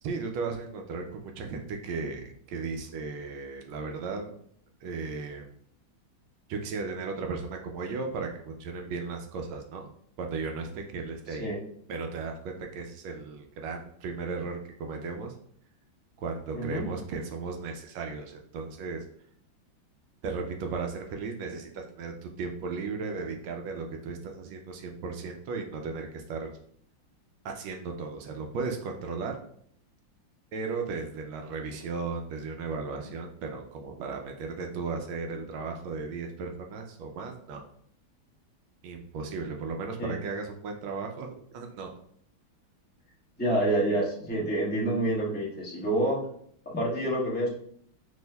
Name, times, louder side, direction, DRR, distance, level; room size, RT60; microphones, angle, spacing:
voice 1, 0.0-4.3 4.8-5.5 6.5-9.9 10.2-11.5 11.9-15.3 16.2-19.0 20.2-26.5 27.4-29.4 30.5-37.6 38.8-41.9, right 4 dB, 80° right, 3 dB, 1.3 m, -35 dB
voice 2, 16.5-16.8 40.0-40.1 43.4-46.2 46.6-47.5, right 1 dB, 10° left, -5 dB, 0.4 m, -27 dB
6.1 x 2.6 x 2.2 m, 0.66 s
omnidirectional pair, 2.2 m